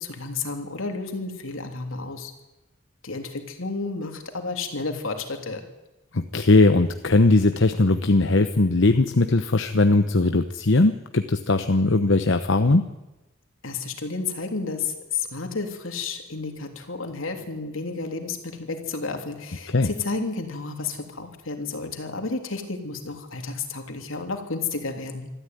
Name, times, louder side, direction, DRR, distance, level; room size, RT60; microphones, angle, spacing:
voice 1, 0.0-2.3 3.0-5.6 13.6-25.3, left 4 dB, 85° left, 4 dB, 3.2 m, -31 dB
voice 2, 6.1-12.9 19.7-19.9, left 2 dB, 65° left, 8 dB, 1.0 m, -19 dB
25.0 x 13.5 x 9.4 m, 1.0 s
head